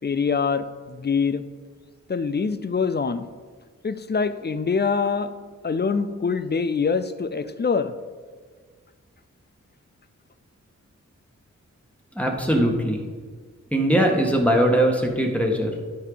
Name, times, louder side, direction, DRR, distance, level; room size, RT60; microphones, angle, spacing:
voice 1, 0.0-1.5 2.1-3.3 3.8-5.3 5.6-7.9, left 5 dB, 35° left, 12 dB, 0.5 m, -24 dB
voice 2, 12.1-13.0 13.7-15.7, right 1 dB, 5° left, 1 dB, 1.6 m, -20 dB
11.5 x 4.7 x 4.0 m, 1.5 s
cardioid pair, 45°, 32 cm